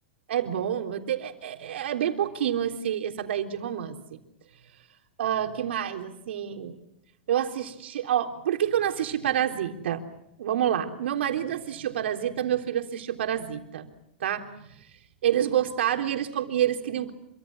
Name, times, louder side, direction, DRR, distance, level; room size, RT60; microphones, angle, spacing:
voice 1, 0.3-4.2 5.2-6.7 7.3-10.0 10.4-13.9 14.2-14.5 15.2-17.1, right 10 dB, 80° right, 4 dB, 3.5 m, -28 dB
26.5 x 25.0 x 6.2 m, 0.83 s
hypercardioid pair, 145°, 6 cm